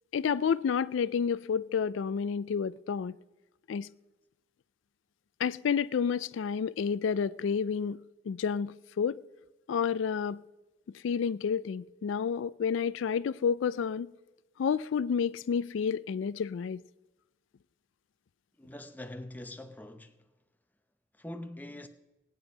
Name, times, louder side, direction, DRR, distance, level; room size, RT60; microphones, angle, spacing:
voice 1, 0.1-3.2 3.7-3.9 5.4-8.0 8.3-9.2 9.7-10.4 11.0-14.1 14.6-16.8, left 6 dB, 80° left, 0.3 m, -30 dB
voice 2, 18.6-20.1 21.2-21.9, left 1 dB, 10° left, 0.7 m, -43 dB
19.0 x 9.1 x 5.4 m
head